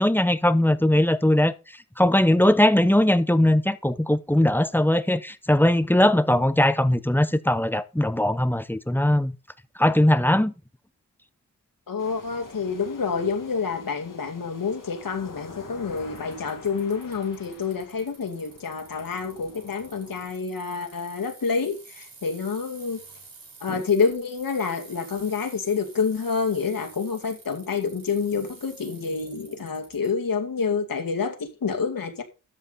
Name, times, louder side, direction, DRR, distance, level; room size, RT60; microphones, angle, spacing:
voice 1, 0.0-1.5 2.0-9.3 9.8-10.5 23.7-23.8, left 1 dB, 5° left, 0.8 m, -20 dB
voice 2, 11.9-23.0 23.6-32.2, left 5 dB, 85° left, 2.4 m, -28 dB
sound 1, 12.0-20.3, left 5 dB, 70° left, 3.0 m, -46 dB
Bicycle, 16.0-30.1, right 4 dB, 85° right, 7.4 m, -49 dB
13.0 x 8.3 x 4.1 m
wide cardioid pair, 100°, 33 cm